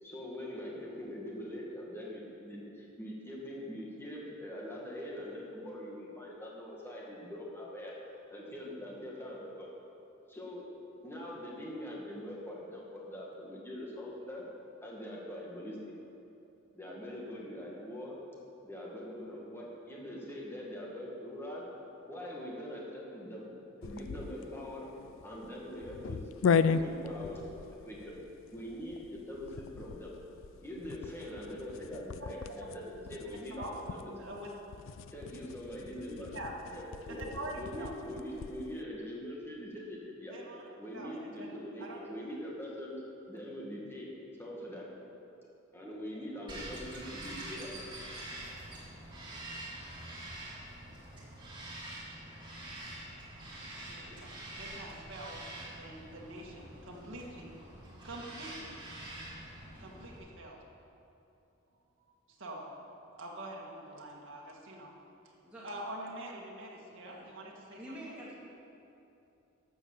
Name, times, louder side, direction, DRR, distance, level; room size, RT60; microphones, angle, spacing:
voice 1, 0.0-7.9 8.3-9.7 10.3-10.7 11.0-14.4 14.8-15.8 16.8-18.2 18.6-21.6 22.1-23.5 23.8-24.9 25.2-28.2 28.5-30.1 30.6-34.1 35.1-37.2 37.6-40.4 40.8-42.9 43.3-44.1 44.4-44.9 45.7-47.7, equal, 10° left, -4 dB, 1.9 m, -43 dB
sound 1, 23.8-38.7, left 6 dB, 65° left, 0.4 m, -37 dB
voice 2, 34.0-34.5 36.3-36.5 37.1-37.9 40.3-40.6 40.9-41.1 41.4-41.5 41.8-42.0 53.8-54.3 54.6-55.4 55.7-57.5 58.0-58.7 59.8-60.6 62.4-64.9 65.6-67.8 68.1-68.2, right 1 dB, 60° right, -3 dB, 2.1 m, -44 dB
Bird vocalization bird call bird song, 46.5-60.2, right 1 dB, 25° right, 2.4 m, -46 dB
voice 3, 67.0-67.3 67.7-68.3, right 1 dB, 5° right, -8 dB, 2.2 m, -47 dB
12.0 x 7.5 x 7.3 m, 2.8 s
head